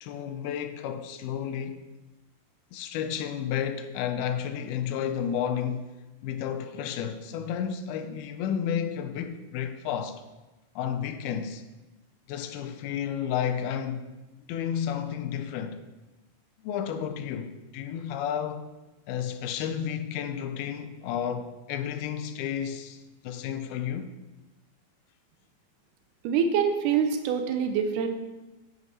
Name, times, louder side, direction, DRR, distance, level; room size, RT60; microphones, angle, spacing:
voice 1, 0.0-1.8 2.7-5.9 6.2-10.2 10.8-11.6 12.3-14.1 14.5-15.8 16.6-18.7 19.1-23.0 23.2-24.1, left 8 dB, 80° left, 2.5 m, -32 dB
voice 2, 26.2-28.1, right 7 dB, 85° right, 1.8 m, -25 dB
9.3 x 8.0 x 4.1 m
omnidirectional pair, 4.5 m